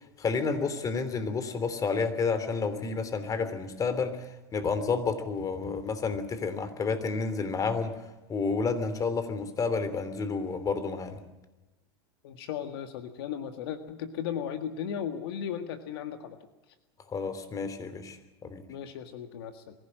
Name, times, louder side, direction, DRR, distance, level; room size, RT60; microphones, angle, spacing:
voice 1, 0.2-8.0 8.3-11.2 17.1-18.6, left 4 dB, 25° left, 11 dB, 3.1 m, -30 dB
voice 2, 12.2-16.4 18.7-19.7, left 8 dB, 70° left, 8 dB, 1.8 m, -36 dB
23.0 x 16.0 x 7.7 m, 1.1 s
hypercardioid pair, 105°, 13 cm